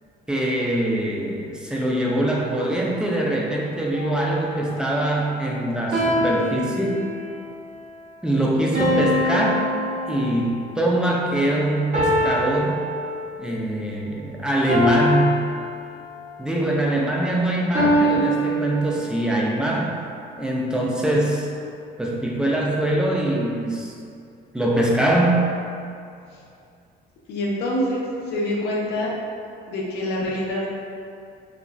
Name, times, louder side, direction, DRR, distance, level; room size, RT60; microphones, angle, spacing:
voice 1, 0.3-7.0 8.2-9.7 10.1-12.8 13.4-15.5 16.4-20.0 20.4-21.5 22.0-23.9 24.5-25.5, right 1 dB, 5° right, -3 dB, 0.3 m, -23 dB
sound 1, 3.9-4.4 5.9-7.4 8.7-10.6 11.9-13.5 14.7-16.3 17.7-19.3, equal, 45° right, 0.8 m, -24 dB
voice 2, 27.3-29.1 29.7-30.7, left 1 dB, 80° left, -4 dB, 0.6 m, -26 dB
3.0 x 2.5 x 2.2 m, 2.5 s
cardioid pair, 110°, 17 cm